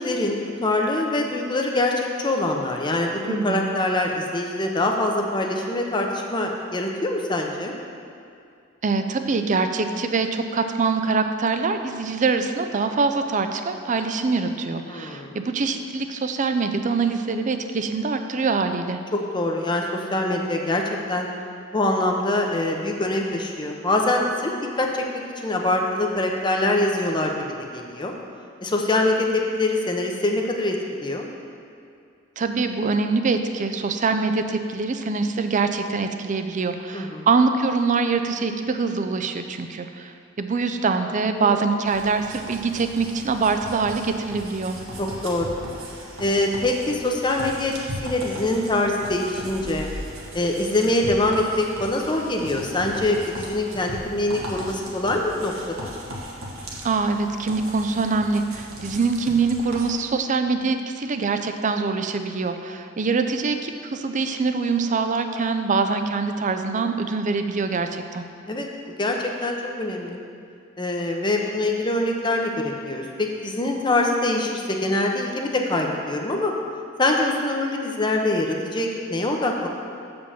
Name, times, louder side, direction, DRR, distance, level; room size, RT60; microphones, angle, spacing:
voice 1, 0.0-7.8 14.9-15.4 18.8-19.0 19.3-20.8 21.1-21.3 21.7-25.0 25.4-27.3 27.7-28.1 28.6-31.3 36.9-37.3 41.3-41.5 45.0-45.6 46.2-47.7 48.0-49.9 50.3-55.5 55.8-55.9 68.5-68.7 69.0-70.2 70.8-76.5 77.0-79.7, left 2 dB, 20° left, 1 dB, 0.8 m, -24 dB
voice 2, 3.3-3.7 8.8-19.0 32.4-44.8 56.8-68.3, right 4 dB, 40° right, 7 dB, 0.5 m, -24 dB
sound 1, 41.9-59.9, equal, 80° right, 1.5 m, -37 dB
7.0 x 5.2 x 7.2 m, 2.4 s
head